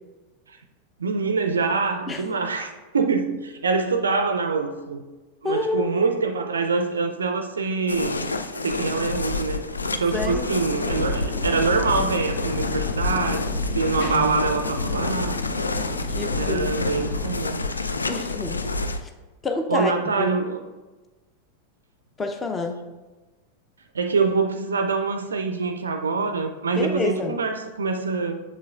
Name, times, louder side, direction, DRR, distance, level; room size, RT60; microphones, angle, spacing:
voice 1, 1.0-5.0 5.4-8.3 8.6-9.6 9.9-13.5 13.7-15.4 16.3-17.7 19.7-20.6 23.9-28.4, right 4 dB, 70° right, 0.4 m, -25 dB
voice 2, 5.4-6.0 10.1-10.5 16.1-16.9 18.1-18.6 19.0-19.1 19.4-19.9 20.2-20.4 22.2-22.8 26.7-27.4, left 3 dB, 15° left, 0.6 m, -28 dB
sound 1, 7.9-19.0, left 3 dB, 75° left, 0.3 m, -28 dB
sound 2, 10.5-17.3, left 2 dB, 60° left, 1.1 m, -34 dB
7.4 x 6.6 x 2.4 m
figure-of-eight pair, 90°, 0 cm